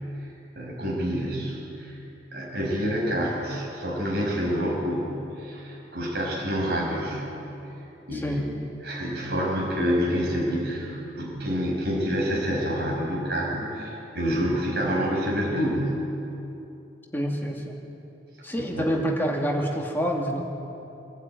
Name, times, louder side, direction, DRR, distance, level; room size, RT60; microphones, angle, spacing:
voice 1, 0.2-2.0 2.3-7.3 8.1-8.5 8.8-16.0 18.6-19.0, equal, 70° right, -3 dB, 5.8 m, -28 dB
voice 2, 8.1-8.5 17.1-17.8 18.4-20.4, equal, 10° left, -1 dB, 2.4 m, -27 dB
26.5 x 12.0 x 9.3 m, 2.9 s
head